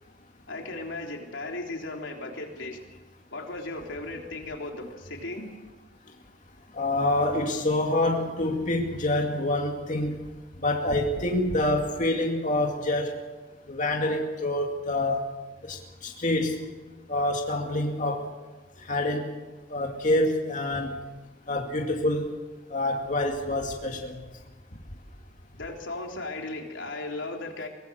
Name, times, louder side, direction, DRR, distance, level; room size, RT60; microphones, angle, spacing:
voice 1, 0.5-2.8 3.3-5.5 25.6-27.7, left 2 dB, 80° left, 1 dB, 3.7 m, -36 dB
voice 2, 6.7-10.3 10.6-13.2 13.7-15.2 15.6-16.6 17.1-18.3 18.8-19.4 19.7-21.0 21.5-22.4 22.7-24.2, left 1 dB, 40° left, 1 dB, 2.3 m, -27 dB
24.0 x 18.5 x 6.6 m, 1.2 s
head